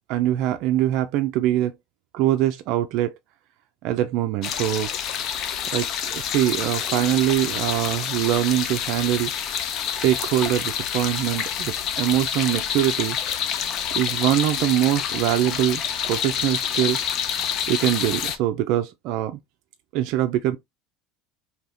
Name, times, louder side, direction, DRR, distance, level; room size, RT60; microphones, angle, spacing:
voice 1, 0.1-1.7 2.1-3.2 3.8-4.9 5.7-9.3 10.0-13.2 13.9-17.0 17.7-19.4 19.9-20.6, right 13 dB, 60° right, 0.4 m, -23 dB
sound 1, 4.4-18.4, left 8 dB, 50° left, 0.6 m, -28 dB
3.3 x 2.7 x 2.6 m
supercardioid pair, 115°, 0 cm